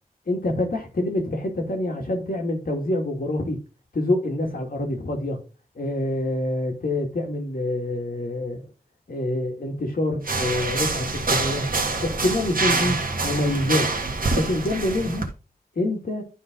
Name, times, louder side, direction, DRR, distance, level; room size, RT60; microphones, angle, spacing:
voice 1, 0.3-3.6 3.9-5.4 5.8-8.6 9.1-11.6 12.0-13.0 13.2-13.9 14.3-15.3 15.8-16.2, left 1 dB, 70° left, 2.4 m, -26 dB
sound 1, 10.2-15.3, right 3 dB, 65° right, 1.5 m, -26 dB
11.0 x 4.0 x 3.9 m
wide cardioid pair, 65°, 15 cm